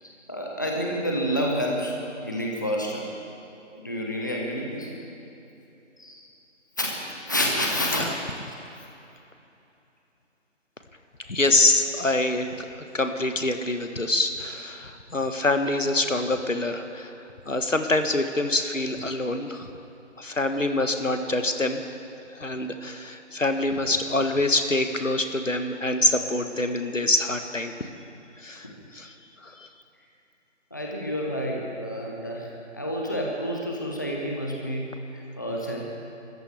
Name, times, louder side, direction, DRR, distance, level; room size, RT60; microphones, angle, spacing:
voice 1, 0.0-2.0 2.2-3.1 3.7-4.9 6.0-6.2 6.8-6.9 7.3-8.0 30.7-35.8, equal, 15° left, -2 dB, 0.8 m, -29 dB
voice 2, 11.3-12.7 12.9-17.1 17.5-19.7 20.2-21.8 22.4-27.7 28.4-28.7 28.9-29.1 29.4-29.7, left 2 dB, 85° left, 7 dB, 1.5 m, -25 dB
28.5 x 14.0 x 3.4 m, 2.9 s
figure-of-eight pair, 155°, 37 cm